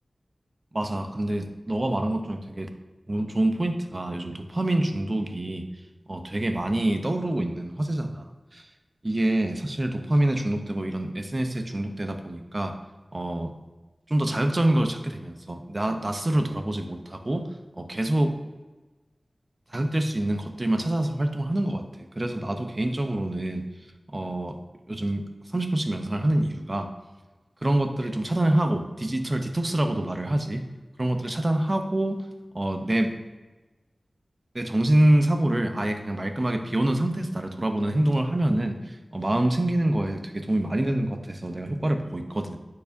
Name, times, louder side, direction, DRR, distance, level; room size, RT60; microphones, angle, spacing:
voice 1, 0.7-2.7 3.1-5.6 6.1-8.2 8.5-8.6 9.0-12.7 13.1-13.5 14.1-17.5 17.8-18.3 19.7-21.8 22.2-23.7 24.1-24.6 24.9-25.2 25.5-26.9 27.6-30.6 31.0-32.2 32.5-33.1 34.5-42.6, right 1 dB, 40° right, 6 dB, 0.7 m, -26 dB
9.5 x 4.8 x 2.7 m, 1.2 s
wide cardioid pair, 50°, 0 cm